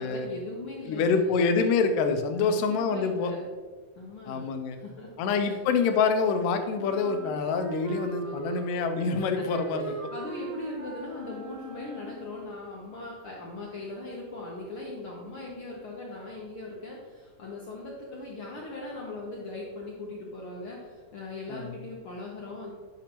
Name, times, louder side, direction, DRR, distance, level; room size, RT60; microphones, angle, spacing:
voice 1, 0.0-1.5 2.4-3.5 4.0-5.1 5.5-5.6 7.9-8.8 9.4-9.5 9.8-22.7, left 2 dB, 70° left, -3 dB, 1.3 m, -40 dB
voice 2, 0.9-3.3 4.3-4.8 5.2-10.1 21.5-21.8, left 5 dB, 85° left, 6 dB, 2.3 m, -26 dB
Wind instrument woodwind instrument, 6.7-12.6, right 4 dB, 65° right, 1.9 m, -40 dB
10.5 x 6.1 x 2.9 m, 1.4 s
omnidirectional pair, 3.7 m